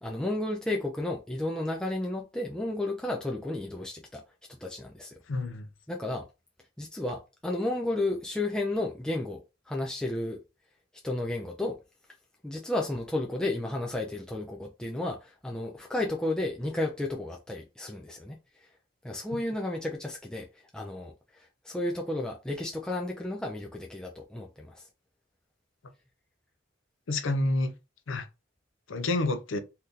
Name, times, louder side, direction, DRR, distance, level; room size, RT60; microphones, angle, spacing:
voice 1, 0.0-4.2 4.5-5.2 5.9-6.3 6.8-10.4 11.0-11.8 12.4-18.7 19.0-24.9, left 2 dB, 5° left, 0.3 m, -33 dB
voice 2, 5.3-5.7 27.1-27.7 28.1-28.3 28.9-29.6, left 2 dB, 80° left, 0.6 m, -28 dB
2.8 x 2.5 x 3.5 m
head